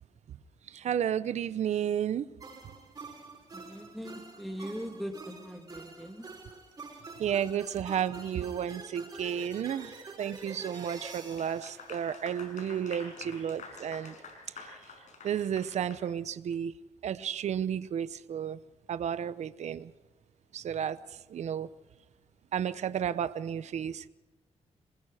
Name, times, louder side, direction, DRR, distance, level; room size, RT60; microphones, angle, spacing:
voice 1, 0.7-2.3 7.2-14.2 14.6-14.7 15.2-16.7 17.0-18.6 18.9-19.9 20.5-21.7 22.5-24.1, right 9 dB, 65° right, 13 dB, 0.8 m, -32 dB
sound 1, 2.4-12.8, right 3 dB, 30° right, 5.6 m, -47 dB
voice 2, 3.5-6.3, equal, ahead, 4 dB, 2.0 m, -40 dB
Clapping / Applause, 11.2-16.1, left 4 dB, 80° left, 5.6 m, -47 dB
27.0 x 20.5 x 5.0 m, 1.0 s
wide cardioid pair, 125°, 12 cm